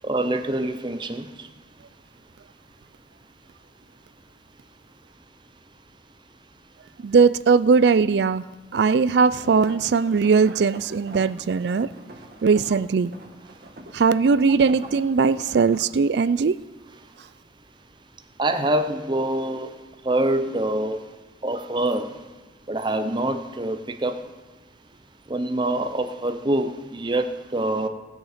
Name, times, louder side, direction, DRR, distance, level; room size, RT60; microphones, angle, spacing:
voice 1, 0.0-1.5 14.5-14.6 18.4-19.7 20.0-21.0 21.4-22.2 22.7-24.2 25.3-27.9, right 1 dB, 25° right, 8 dB, 0.7 m, -25 dB
voice 2, 7.0-8.4 8.7-11.9 12.4-13.1 13.9-16.6, right 5 dB, 70° right, 17 dB, 0.4 m, -19 dB
sound 1, 9.3-15.8, right 1 dB, 55° right, 1.7 m, -44 dB
19.0 x 6.4 x 5.0 m, 1.2 s
head